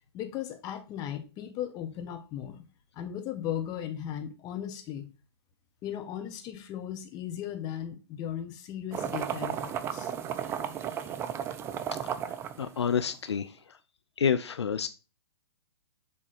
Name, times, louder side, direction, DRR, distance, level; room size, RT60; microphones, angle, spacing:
voice 1, 0.1-2.7 2.9-5.1 5.8-10.1, left 10 dB, 30° left, 1.3 m, -37 dB
sound 1, 8.9-13.3, right 9 dB, 15° right, 0.5 m, -34 dB
voice 2, 12.2-13.5 14.2-14.9, left 7 dB, 80° left, 0.6 m, -29 dB
7.0 x 3.5 x 5.0 m
hypercardioid pair, 125°, 14 cm